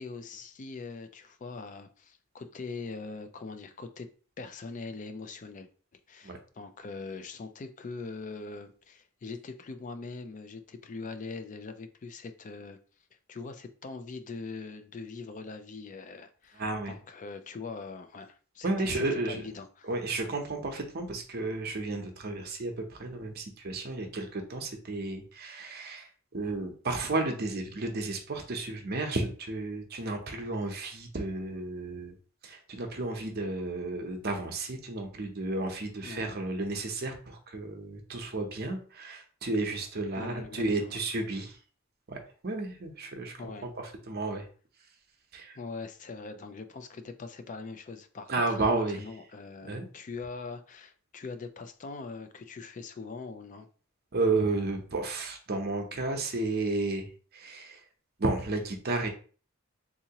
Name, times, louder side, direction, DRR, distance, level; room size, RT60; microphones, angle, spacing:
voice 1, 0.0-4.1 4.4-5.7 6.1-12.8 13.3-19.9 36.0-36.4 40.2-41.0 43.4-43.7 45.5-53.7, left 4 dB, 40° left, 0.4 m, -42 dB
voice 2, 16.6-16.9 18.6-19.4 19.9-32.1 32.4-41.6 42.1-42.2 42.4-43.3 43.6-44.4 45.3-45.6 48.3-49.0 49.6-49.9 54.1-57.1 57.3-57.8 58.2-59.1, right 2 dB, 50° right, 0.7 m, -32 dB
3.6 x 2.8 x 2.8 m
head